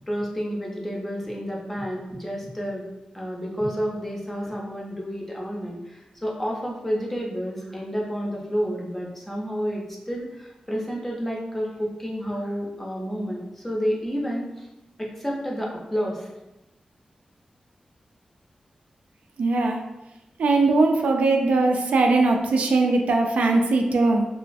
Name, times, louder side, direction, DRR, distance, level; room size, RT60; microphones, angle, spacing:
voice 1, 0.1-2.9 3.1-14.7 15.0-16.3, equal, 10° left, -3 dB, 0.5 m, -30 dB
voice 2, 19.4-19.8 20.4-24.3, right 3 dB, 80° right, 3 dB, 0.3 m, -20 dB
3.0 x 2.3 x 2.5 m, 0.97 s
wide cardioid pair, 165°, 2 cm